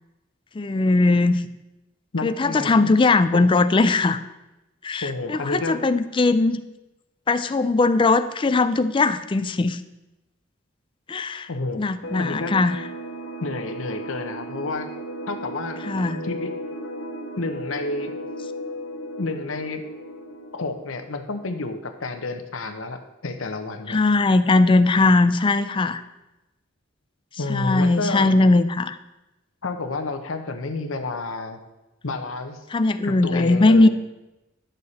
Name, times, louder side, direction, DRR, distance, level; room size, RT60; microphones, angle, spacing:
voice 1, 0.6-1.4 2.2-4.2 4.8-6.6 7.3-9.8 11.1-11.5 11.8-12.8 15.9-16.2 23.9-26.0 27.5-29.0 32.7-33.9, left 3 dB, 25° left, 11 dB, 0.4 m, -19 dB
voice 2, 2.1-2.9 3.3-3.4 5.0-5.8 11.5-12.6 13.4-14.9 15.3-15.8 16.2-16.5 17.4-18.2 19.2-19.8 20.5-24.0 27.4-28.3 29.6-31.6 32.0-32.6 33.0-33.9, left 3 dB, 85° left, 7 dB, 0.9 m, -30 dB
sound 1, 12.0-21.4, right 1 dB, 65° left, 1.3 m, -35 dB
10.5 x 6.6 x 4.2 m, 0.99 s
head